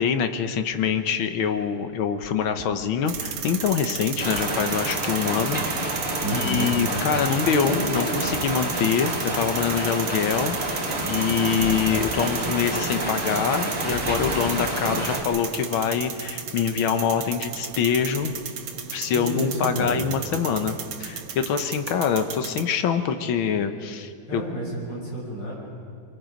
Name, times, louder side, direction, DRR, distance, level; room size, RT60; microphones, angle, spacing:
voice 1, 0.0-6.1 6.3-18.3 18.7-24.4, left 7 dB, 70° left, 8 dB, 1.8 m, -25 dB
sound 1, 1.6-1.7 2.2-3.7 4.4-4.6 4.9-5.4 5.7-8.6 9.7-10.2 10.5-12.8 13.1-13.2 13.5-14.7 15.3-15.4, left 3 dB, 35° left, 1.1 m, -37 dB
sound 2, 3.1-22.6, right 7 dB, 85° right, 2.1 m, -34 dB
sound 3, 4.2-15.2, right 1 dB, 15° right, 2.8 m, -29 dB
voice 2, 6.2-6.7 19.1-20.1 24.3-25.5, right 1 dB, 55° left, -5 dB, 7.2 m, -30 dB
24.5 x 23.5 x 5.2 m, 2.3 s
omnidirectional pair, 2.4 m